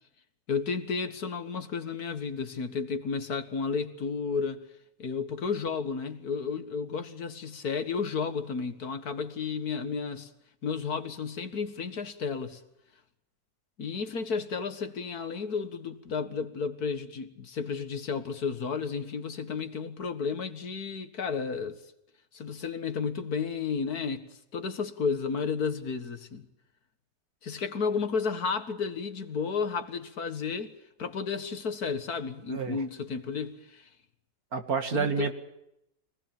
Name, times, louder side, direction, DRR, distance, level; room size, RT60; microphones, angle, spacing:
voice 1, 0.5-4.7 5.0-10.3 10.6-12.6 13.8-21.8 22.3-26.5 27.4-30.7 31.0-33.9 34.9-35.3, left 5 dB, 70° left, 2.2 m, -32 dB
voice 2, 34.5-35.3, right 5 dB, 65° right, 2.6 m, -29 dB
25.0 x 19.0 x 9.0 m
omnidirectional pair, 1.7 m